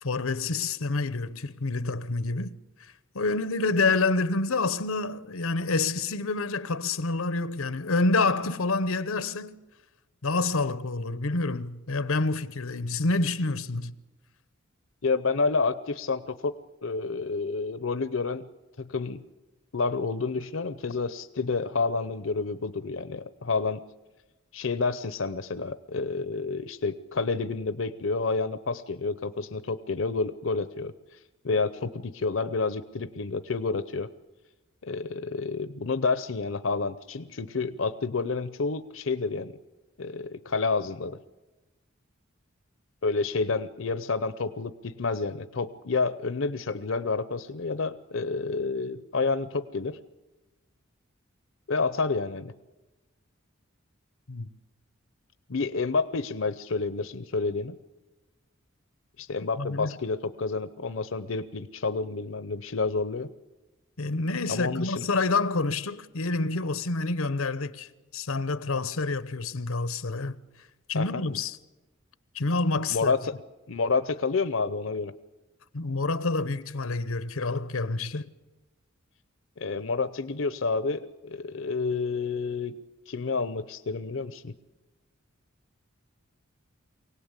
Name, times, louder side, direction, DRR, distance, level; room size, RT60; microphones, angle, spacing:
voice 1, 0.0-2.5 3.1-9.6 10.2-13.9 54.3-54.5 59.6-60.0 64.0-67.9 68.1-70.4 70.9-71.6 72.3-73.1 75.7-78.3, left 3 dB, 90° left, 1.0 m, -28 dB
voice 2, 15.0-16.5 16.8-18.5 18.8-19.2 19.7-23.8 24.5-31.2 31.4-34.1 34.8-39.6 40.0-41.2 43.0-50.0 51.7-52.5 55.5-57.8 59.2-63.3 64.5-65.0 70.9-71.2 72.9-73.3 73.7-75.1 79.6-82.8 83.1-84.5, left 4 dB, 65° left, 0.7 m, -29 dB
24.5 x 18.0 x 8.2 m
head